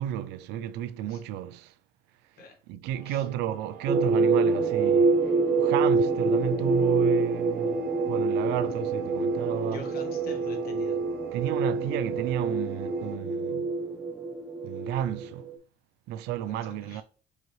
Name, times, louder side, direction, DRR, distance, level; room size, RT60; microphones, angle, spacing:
voice 1, 0.0-1.7 2.7-9.9 11.3-13.8 14.6-15.5 16.1-17.0, right 11 dB, 90° right, 0.4 m, -32 dB
sound 1, 2.9-13.2, right 5 dB, 75° right, 0.8 m, -43 dB
sound 2, 3.9-15.5, right 4 dB, 5° right, 0.4 m, -26 dB
voice 2, 9.7-11.0 16.4-17.0, left 2 dB, 60° left, 1.4 m, -45 dB
4.7 x 2.9 x 3.0 m
cardioid pair, 110°, 17 cm